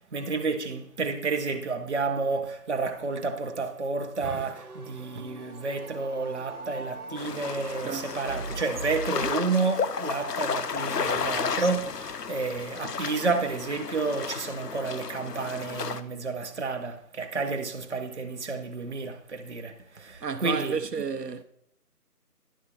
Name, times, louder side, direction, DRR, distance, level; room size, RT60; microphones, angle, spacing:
voice 1, 0.1-20.8, right 4 dB, 45° right, 0.9 m, -30 dB
sound 1, 4.2-9.3, right 3 dB, 65° right, 1.3 m, -41 dB
sound 2, 7.2-16.0, left 6 dB, 85° left, 0.8 m, -33 dB
voice 2, 7.8-8.2 20.2-21.4, right 6 dB, 85° right, 0.9 m, -32 dB
10.5 x 4.1 x 6.7 m
figure-of-eight pair, 165°, 47 cm